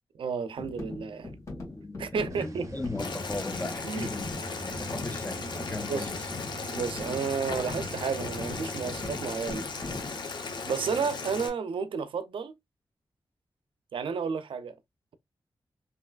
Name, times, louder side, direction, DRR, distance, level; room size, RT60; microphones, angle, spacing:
voice 1, 0.2-1.3 2.0-2.7 3.8-4.1 5.9-6.1 6.7-9.6 10.6-12.6 13.9-14.7, right 5 dB, 80° right, 0.4 m, -32 dB
sound 1, 0.6-10.2, left 2 dB, 35° left, 1.6 m, -42 dB
voice 2, 1.8-6.2, left 2 dB, 20° left, 0.4 m, -37 dB
sound 2, 2.3-9.2, right 3 dB, 40° right, 0.6 m, -44 dB
Boiling, 3.0-11.5, left 4 dB, 60° left, 0.7 m, -37 dB
3.1 x 2.7 x 2.3 m
cardioid pair, 75°, 9 cm